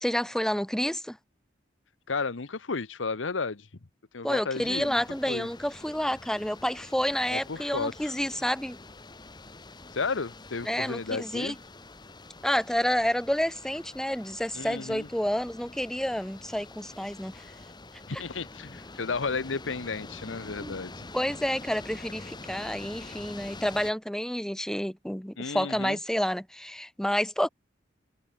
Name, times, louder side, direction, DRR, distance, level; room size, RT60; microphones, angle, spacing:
voice 1, 0.0-1.2 4.2-8.8 10.6-11.6 12.4-17.5 18.1-18.2 20.6-20.7 21.1-27.5, equal, 5° left, 0.7 m, -29 dB
voice 2, 2.1-3.7 4.1-5.0 5.3-5.5 7.3-8.1 9.9-11.6 14.5-15.1 18.1-21.0 25.4-26.0, left 4 dB, 85° left, 1.0 m, -33 dB
sound 1, 4.5-23.9, left 2 dB, 25° left, 1.3 m, -46 dB
head